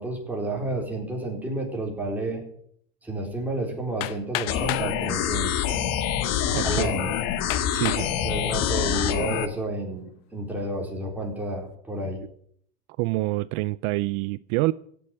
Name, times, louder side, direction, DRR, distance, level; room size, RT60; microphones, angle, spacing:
voice 1, 0.0-2.4 3.0-5.7 6.6-7.1 8.2-12.2, right 2 dB, 5° right, 4.4 m, -30 dB
Hammer, 4.0-4.9 5.8-5.9 6.5-6.6 7.5-8.1 8.7-9.1, left 16 dB, 80° left, 1.0 m, -32 dB
sound 1, 4.5-9.5, left 9 dB, 60° left, 1.7 m, -26 dB
voice 2, 6.5-6.9 7.7-8.1 13.0-14.7, right 20 dB, 65° right, 0.5 m, -26 dB
16.0 x 7.0 x 9.6 m
cardioid pair, 145°, 29 cm